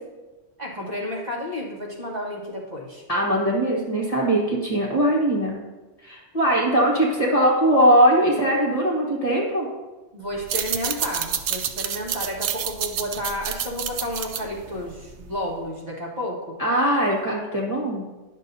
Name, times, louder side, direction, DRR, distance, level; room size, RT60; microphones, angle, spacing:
voice 1, 0.6-3.0 10.1-16.5, left 1 dB, 40° right, -4 dB, 1.6 m, -31 dB
voice 2, 3.1-5.6 6.0-9.7 16.6-18.1, right 1 dB, 35° left, -4 dB, 1.4 m, -20 dB
sound 1, 10.4-15.5, right 9 dB, 80° right, 0.9 m, -29 dB
10.5 x 6.5 x 2.7 m, 1.2 s
omnidirectional pair, 1.1 m